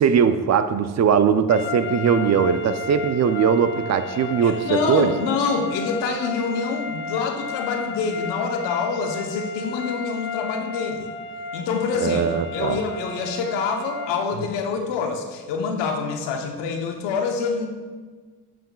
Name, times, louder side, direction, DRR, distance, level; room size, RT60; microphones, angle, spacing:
voice 1, 0.0-5.1 12.0-12.8, right 7 dB, 40° right, 11 dB, 0.5 m, -20 dB
sound 1, 1.5-14.3, left 3 dB, 30° left, 0.4 m, -33 dB
voice 2, 4.4-11.1 11.5-12.2 12.5-17.7, left 5 dB, 80° left, 3 dB, 1.0 m, -26 dB
7.6 x 7.5 x 2.3 m, 1.4 s
supercardioid pair, 60°, 42 cm